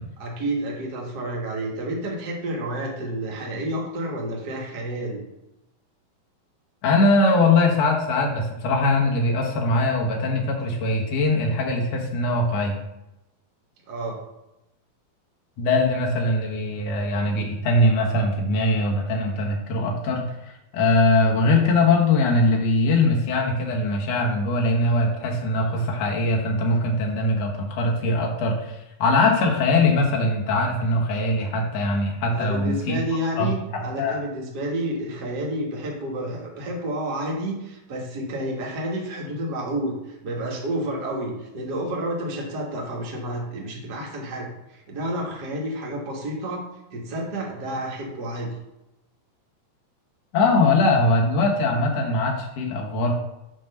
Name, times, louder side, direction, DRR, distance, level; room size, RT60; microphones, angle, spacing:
voice 1, 0.2-5.2 13.9-14.2 32.3-46.6 46.9-48.5, right 1 dB, 45° right, -2 dB, 1.4 m, -30 dB
voice 2, 6.8-12.8 15.6-33.0 33.4-34.2 50.3-53.1, left 2 dB, 60° left, 0 dB, 2.1 m, -21 dB
9.1 x 3.1 x 6.6 m, 0.92 s
omnidirectional pair, 4.2 m